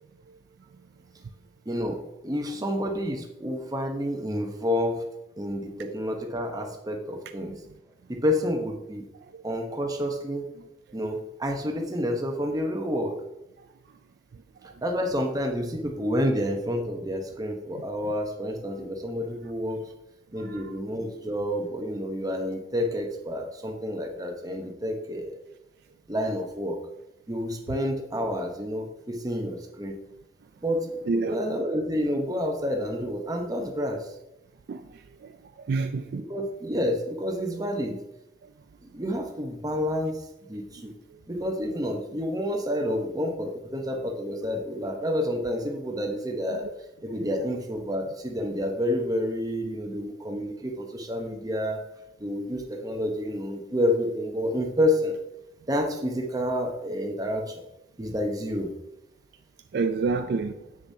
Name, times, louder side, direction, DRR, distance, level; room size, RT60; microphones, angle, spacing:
voice 1, 1.7-5.0 5.4-7.5 8.1-9.1 9.4-10.5 10.9-13.2 14.8-19.9 20.3-25.4 26.1-26.8 27.3-30.0 30.6-34.1 36.2-38.0 38.9-40.9 41.3-46.7 47.0-51.8 52.2-55.1 55.7-57.6 58.0-58.7, equal, 20° right, 3 dB, 0.9 m, -29 dB
voice 2, 20.4-20.7 31.1-31.4 34.7-34.8 35.2-35.3 35.6-36.2 59.7-60.5, right 4 dB, 60° right, 8 dB, 0.4 m, -28 dB
7.9 x 6.7 x 2.7 m, 0.91 s
head